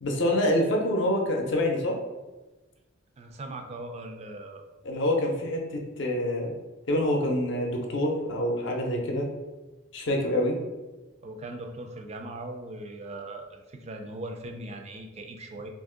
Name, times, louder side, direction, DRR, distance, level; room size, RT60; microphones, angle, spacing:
voice 1, 0.0-2.0 4.8-6.5 6.9-9.3 9.9-10.6, left 1 dB, 60° left, 1 dB, 0.6 m, -26 dB
voice 2, 3.2-4.6 11.2-15.7, right 2 dB, 30° right, 4 dB, 0.3 m, -39 dB
2.8 x 2.5 x 3.7 m, 1.2 s
head